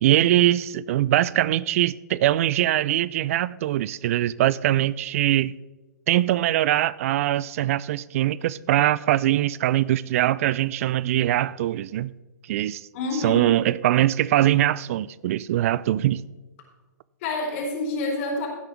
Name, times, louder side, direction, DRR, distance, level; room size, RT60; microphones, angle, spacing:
voice 1, 0.0-5.6 6.1-12.1 12.5-16.2, right 13 dB, 50° right, 0.3 m, -22 dB
voice 2, 12.9-13.5 17.2-18.5, left 2 dB, 45° left, 4.3 m, -28 dB
16.0 x 9.1 x 3.5 m
figure-of-eight pair, 115°, 10 cm